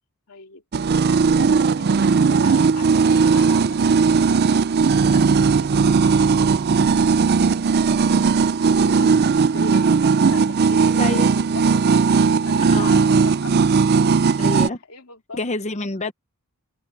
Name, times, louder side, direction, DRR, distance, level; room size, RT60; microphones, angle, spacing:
voice 1, 0.3-0.6 1.0-7.1 7.8-14.6 14.9-15.4, left 3 dB, 75° left, 3.0 m, -40 dB
sound 1, 0.7-14.7, right 5 dB, 45° right, 0.4 m, -17 dB
voice 2, 11.0-11.3 12.7-13.1 14.4-14.8 15.3-16.1, left 3 dB, 30° left, 0.9 m, -27 dB
open air
head